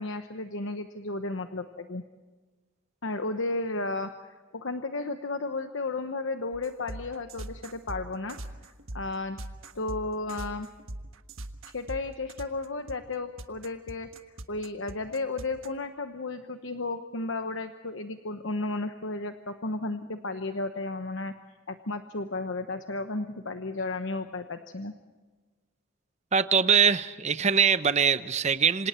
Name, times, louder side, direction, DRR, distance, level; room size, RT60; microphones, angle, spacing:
voice 1, 0.0-2.0 3.0-9.4 9.7-10.7 11.6-14.1 14.5-21.3 21.7-24.9, left 2 dB, 65° left, 7 dB, 1.1 m, -33 dB
sound 1, 6.5-15.7, right 1 dB, 75° right, 1.5 m, -41 dB
voice 2, 26.3-28.9, right 6 dB, 35° right, 12 dB, 0.7 m, -23 dB
27.0 x 26.5 x 4.4 m, 1.3 s
head